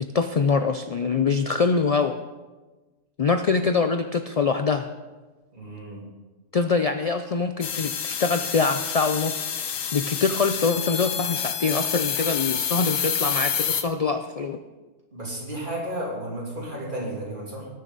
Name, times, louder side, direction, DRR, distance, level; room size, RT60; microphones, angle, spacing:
voice 1, 0.0-2.2 3.2-4.9 6.5-9.5 9.9-14.6, left 4 dB, 65° left, 7 dB, 0.3 m, -24 dB
voice 2, 5.5-6.0 15.1-17.7, right 1 dB, 40° right, -4 dB, 3.2 m, -33 dB
sound 1, 7.6-13.8, left 8 dB, 90° left, 1.2 m, -28 dB
19.5 x 6.8 x 4.0 m, 1.2 s
omnidirectional pair, 1.3 m